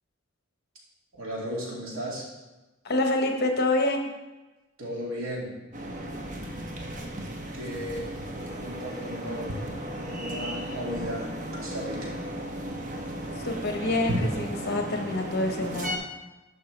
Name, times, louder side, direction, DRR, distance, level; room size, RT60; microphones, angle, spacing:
voice 1, 1.2-2.2 4.8-5.5 7.5-8.1 8.4-9.6 9.9-12.1, equal, 90° right, -4 dB, 2.5 m, -35 dB
voice 2, 2.8-4.1 13.4-16.0, left 2 dB, 55° left, 4 dB, 1.1 m, -27 dB
sound 1, 5.7-16.0, equal, 40° right, 1.0 m, -34 dB
11.0 x 5.8 x 3.3 m, 1.1 s
head